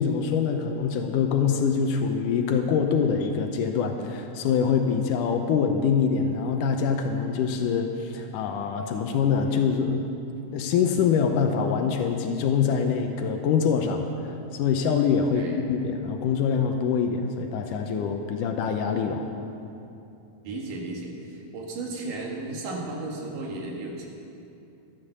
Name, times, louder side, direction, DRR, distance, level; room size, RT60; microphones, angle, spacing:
voice 1, 0.0-10.1 10.5-19.3, left 6 dB, 85° left, 5 dB, 2.3 m, -24 dB
voice 2, 20.4-24.1, right 2 dB, 85° right, -1 dB, 3.5 m, -34 dB
13.5 x 11.0 x 6.8 m, 2.7 s
omnidirectional pair, 3.7 m